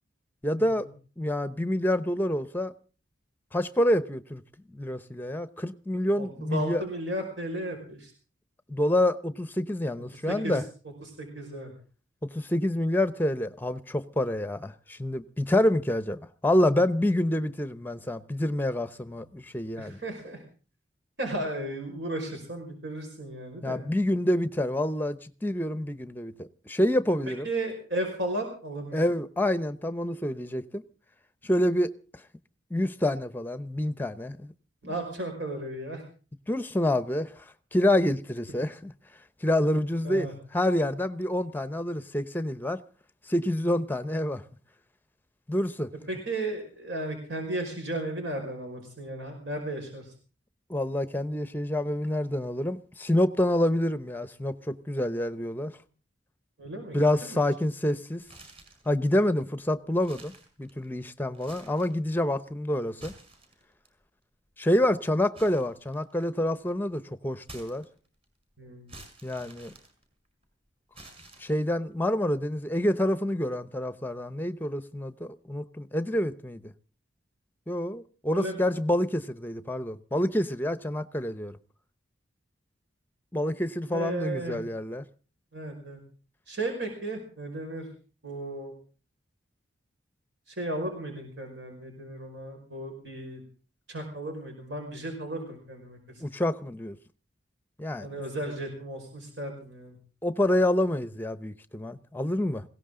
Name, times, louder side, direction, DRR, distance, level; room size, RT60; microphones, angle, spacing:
voice 1, 0.4-0.9 1.2-2.7 3.5-4.4 4.7-6.8 8.7-10.6 12.2-20.0 23.6-27.5 28.9-30.8 31.4-31.9 32.7-34.5 36.5-37.4 37.7-38.9 39.4-40.3 40.5-42.8 43.3-44.4 45.5-45.9 50.7-55.7 56.9-58.2 58.9-60.3 60.6-63.1 64.6-67.8 69.2-69.7 71.4-76.7 77.7-81.5 83.3-85.0 96.2-97.0 97.8-98.1 100.2-102.6, left 1 dB, 10° left, 0.8 m, -27 dB
voice 2, 6.2-8.1 10.3-10.6 11.0-11.7 19.8-20.4 21.2-23.8 27.3-29.0 34.8-36.0 40.0-40.3 46.1-50.1 56.6-57.4 68.6-68.9 78.3-78.6 83.9-84.6 85.5-86.0 86.5-87.9 88.2-88.7 90.5-93.4 93.9-96.2 98.0-100.0, right 1 dB, 65° right, 5.3 m, -35 dB
sound 1, 58.2-58.9 59.4-59.5 59.9-61.0 61.3-62.0 62.8-63.9 65.3-66.4 67.4-68.2 68.9-70.4 70.9-71.8, right 2 dB, 30° right, 5.4 m, -50 dB
20.5 x 17.0 x 3.8 m
head